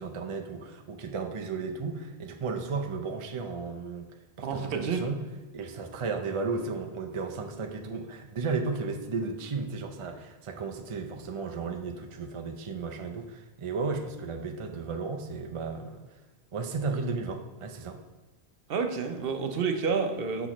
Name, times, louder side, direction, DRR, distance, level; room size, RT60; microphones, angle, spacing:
voice 1, 0.0-4.1 4.4-5.2 5.5-16.0 16.5-18.0, right 4 dB, 40° right, 4 dB, 0.4 m, -34 dB
voice 2, 4.4-5.0 18.7-20.5, right 5 dB, 60° right, 6 dB, 0.8 m, -29 dB
6.1 x 5.8 x 3.0 m, 1.3 s
omnidirectional pair, 1.1 m